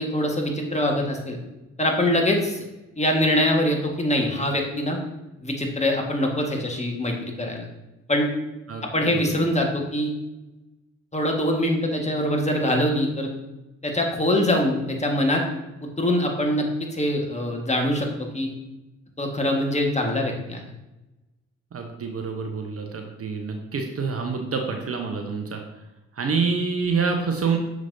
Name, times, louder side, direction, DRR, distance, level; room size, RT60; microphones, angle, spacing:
voice 1, 0.0-1.4 1.8-2.6 3.0-5.0 5.4-7.7 8.1-8.3 8.9-10.1 11.1-13.3 13.8-15.4 16.0-18.5 19.2-20.6, left 1 dB, 20° left, 1 dB, 1.6 m, -23 dB
voice 2, 8.7-9.5 21.7-25.6 26.2-27.6, right 5 dB, 40° right, 3 dB, 0.9 m, -27 dB
6.5 x 6.2 x 2.7 m, 1.0 s
hypercardioid pair, 40°, 36 cm